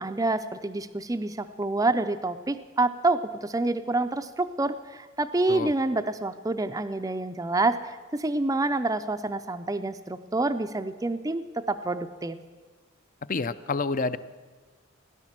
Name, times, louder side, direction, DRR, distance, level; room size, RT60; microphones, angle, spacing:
voice 1, 0.0-12.4, right 2 dB, 15° right, 8 dB, 0.5 m, -27 dB
voice 2, 13.3-14.2, left 4 dB, 40° left, 14 dB, 0.5 m, -28 dB
17.5 x 10.5 x 7.5 m, 1.4 s
head